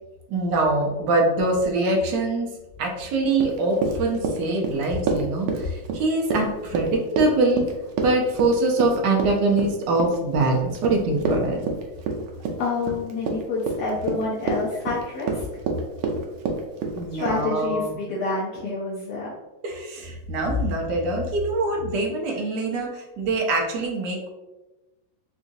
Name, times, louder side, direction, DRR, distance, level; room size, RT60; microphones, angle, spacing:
voice 1, 0.3-2.5 2.8-7.7 8.0-11.6 16.9-17.9 19.6-24.3, right 2 dB, 65° right, 1 dB, 1.1 m, -23 dB
Run, 3.3-17.4, right 4 dB, 90° right, 1.4 m, -28 dB
voice 2, 12.6-15.4 17.1-19.3, left 3 dB, 65° left, -7 dB, 1.0 m, -28 dB
3.8 x 2.4 x 2.6 m, 1.0 s
omnidirectional pair, 2.2 m